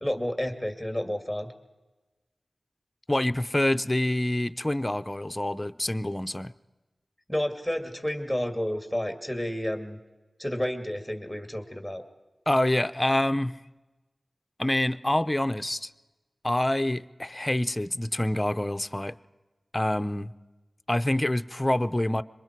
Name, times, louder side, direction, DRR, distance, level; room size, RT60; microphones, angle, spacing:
voice 1, 0.0-1.5 7.3-10.0 10.4-12.0, equal, 5° right, 5 dB, 2.4 m, -30 dB
voice 2, 3.1-6.5 12.5-13.6 14.6-15.9 16.4-19.2 19.7-20.3 20.9-22.2, left 1 dB, 20° left, 11 dB, 0.6 m, -26 dB
26.0 x 23.0 x 4.6 m, 1.2 s
wide cardioid pair, 60°, 0 cm